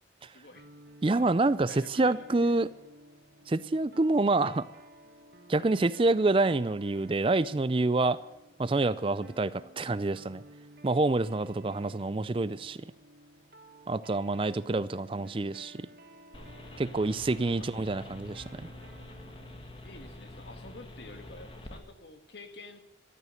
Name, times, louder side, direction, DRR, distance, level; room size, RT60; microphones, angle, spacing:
voice 1, 0.3-0.7 1.7-2.6 9.1-9.3 15.1-15.5 17.6-17.7 19.8-22.8, left 2 dB, 65° left, 7 dB, 1.8 m, -50 dB
sound 1, 0.5-19.7, right 1 dB, 55° right, 1.7 m, -55 dB
voice 2, 1.0-2.7 3.5-4.6 5.5-8.2 8.6-10.4 10.8-12.8 13.9-15.9 16.8-18.7, right 2 dB, 30° right, 17 dB, 0.4 m, -27 dB
sound 2, 16.3-21.8, left 1 dB, 30° left, 1.6 m, -46 dB
14.0 x 12.5 x 6.6 m, 0.91 s
head